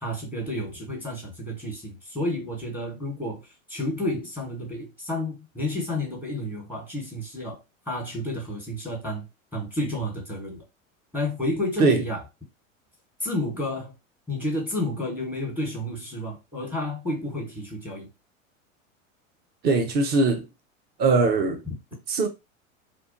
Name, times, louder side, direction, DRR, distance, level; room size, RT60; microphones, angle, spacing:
voice 1, 0.0-7.6 7.9-9.3 9.5-10.6 11.1-12.2 13.2-13.9 14.3-18.1 21.7-21.8, left 1 dB, 5° right, 1.1 m, -31 dB
voice 2, 19.6-20.5 21.0-21.6 22.1-22.3, right 3 dB, 25° right, 0.5 m, -21 dB
2.3 x 2.2 x 2.5 m
figure-of-eight pair, 85°, 41 cm